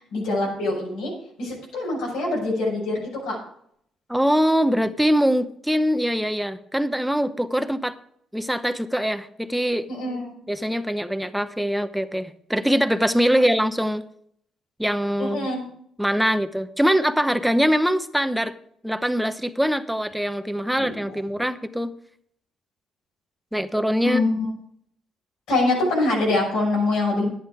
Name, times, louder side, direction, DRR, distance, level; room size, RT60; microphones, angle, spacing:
voice 1, 0.1-1.1 1.4-3.3 9.9-10.3 15.2-15.7 20.8-21.1 24.0-24.5 25.5-27.3, left 2 dB, 90° left, -4 dB, 6.0 m, -24 dB
voice 2, 4.1-8.0 8.3-9.9 10.5-14.0 14.8-15.5 16.0-18.5 18.8-21.9 23.5-24.2, equal, ahead, 10 dB, 0.8 m, -23 dB
11.0 x 9.4 x 4.8 m, 0.68 s
cardioid pair, 90°, 0 cm